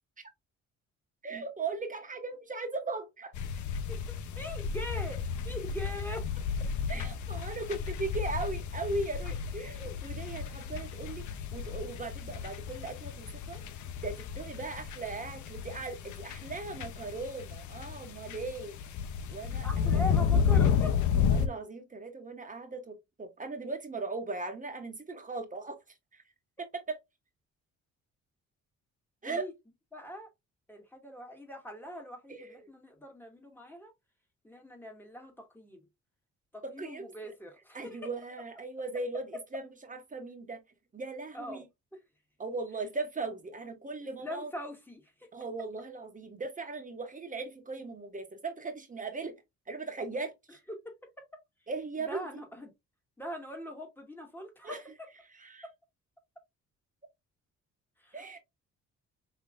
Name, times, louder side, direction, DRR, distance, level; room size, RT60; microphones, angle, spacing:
voice 1, 1.2-3.3 6.9-11.2 11.5-13.6 14.0-18.8 19.3-19.9 21.3-25.8 26.6-27.0 29.2-29.4 32.3-32.6 36.6-37.1 37.7-39.3 39.5-40.6 40.9-41.6 42.4-44.5 45.3-49.3 49.7-50.6 51.7-52.2 54.6-54.8 55.4-55.6 58.1-58.4, right 3 dB, 25° right, 1.4 m, -38 dB
sound 1, 3.3-21.5, left 7 dB, 75° left, 0.7 m, -32 dB
voice 2, 3.9-6.3 19.6-21.0 29.2-29.5 29.9-30.3 30.7-33.9 34.4-35.9 36.5-38.1 41.3-41.6 44.0-45.3 50.7-51.4 52.0-52.7 53.2-55.1 55.6-55.7 58.0-58.4, equal, 5° left, 2.0 m, -42 dB
5.6 x 3.3 x 2.4 m
cardioid pair, 90°, 30 cm